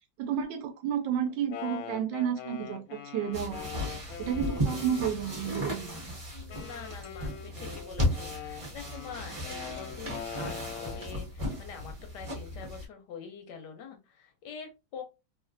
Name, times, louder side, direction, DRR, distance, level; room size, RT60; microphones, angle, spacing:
voice 1, 0.2-3.7 4.2-6.1, right 8 dB, 75° right, 1.2 m, -31 dB
Wind instrument woodwind instrument, 1.3-6.0 6.5-11.2, left 8 dB, 90° left, 1.4 m, -43 dB
sound 1, 3.3-12.9, equal, 25° right, 0.8 m, -35 dB
voice 2, 6.3-15.0, left 6 dB, 75° left, 1.1 m, -45 dB
3.0 x 2.5 x 2.5 m
omnidirectional pair, 2.1 m